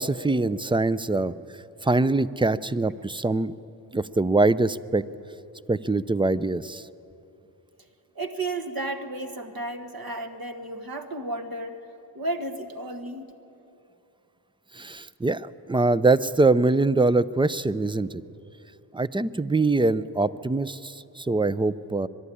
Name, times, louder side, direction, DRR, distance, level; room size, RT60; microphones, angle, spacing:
voice 1, 0.0-1.3 1.8-3.5 3.9-5.0 5.7-6.8 14.7-18.2 18.9-22.1, right 2 dB, 10° right, 17 dB, 0.5 m, -23 dB
voice 2, 8.1-11.8 12.1-13.3, right 2 dB, 50° right, 5 dB, 1.5 m, -33 dB
23.5 x 11.0 x 9.9 m, 2.9 s
cardioid pair, 50°, 47 cm